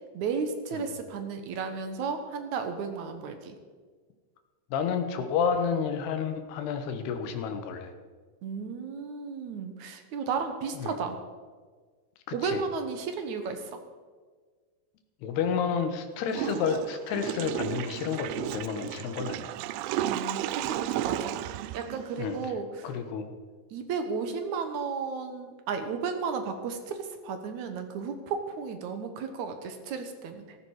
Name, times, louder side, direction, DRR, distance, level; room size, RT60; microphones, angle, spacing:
voice 1, 0.1-3.6 8.4-11.2 12.3-13.8 20.0-21.4 21.7-22.9 23.7-30.6, right 5 dB, 65° right, 7 dB, 2.0 m, -34 dB
voice 2, 4.7-7.9 10.8-10.9 12.3-12.6 15.2-19.6 22.2-22.4 22.8-23.3, left 6 dB, 85° left, 7 dB, 3.3 m, -30 dB
Water / Toilet flush, 16.3-22.5, right 13 dB, 90° right, 2.6 m, -33 dB
15.5 x 14.0 x 4.8 m, 1.5 s
omnidirectional pair, 4.5 m